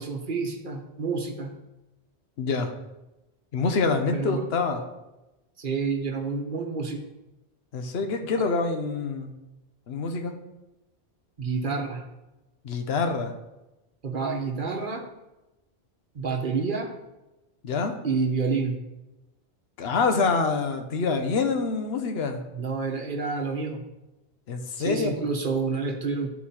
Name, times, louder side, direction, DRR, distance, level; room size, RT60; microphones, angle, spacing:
voice 1, 0.0-1.5 4.1-4.5 5.6-7.1 11.4-12.0 14.0-15.0 16.1-16.9 18.0-18.8 22.5-23.8 24.8-26.3, right 4 dB, 50° right, 4 dB, 1.2 m, -29 dB
voice 2, 2.4-2.7 3.5-4.8 7.7-9.3 9.9-10.3 12.6-13.3 17.6-17.9 19.8-22.4 24.5-25.2, left 4 dB, 70° left, 5 dB, 1.1 m, -26 dB
11.0 x 4.5 x 4.3 m, 0.99 s
omnidirectional pair, 1.1 m